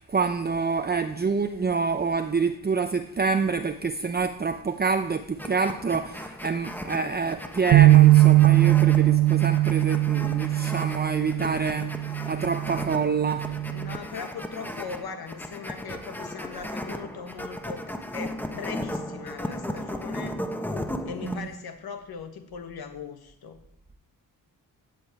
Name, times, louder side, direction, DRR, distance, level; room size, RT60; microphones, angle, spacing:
voice 1, 0.0-13.4 21.2-21.5, right 5 dB, 25° right, 7 dB, 0.7 m, -27 dB
sound 1, 5.4-21.4, left 1 dB, 5° left, 1.2 m, -36 dB
sound 2, 7.7-14.0, right 16 dB, 80° right, 0.7 m, -20 dB
voice 2, 13.7-20.4 21.0-23.6, left 6 dB, 75° left, 7 dB, 1.4 m, -39 dB
16.0 x 5.4 x 9.1 m, 0.76 s
wide cardioid pair, 125°, 37 cm